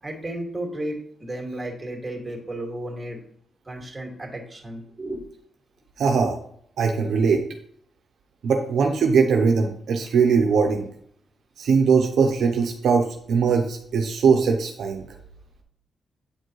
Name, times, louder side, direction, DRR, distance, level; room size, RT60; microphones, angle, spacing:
voice 1, 0.0-3.2 3.7-5.2, right 1 dB, 20° right, 0 dB, 2.3 m, -33 dB
voice 2, 6.0-6.4 6.8-7.4 8.4-10.9 11.6-15.0, right 5 dB, 75° right, 3 dB, 0.7 m, -20 dB
8.3 x 4.3 x 3.1 m, 0.64 s
supercardioid pair, 50°, 0 cm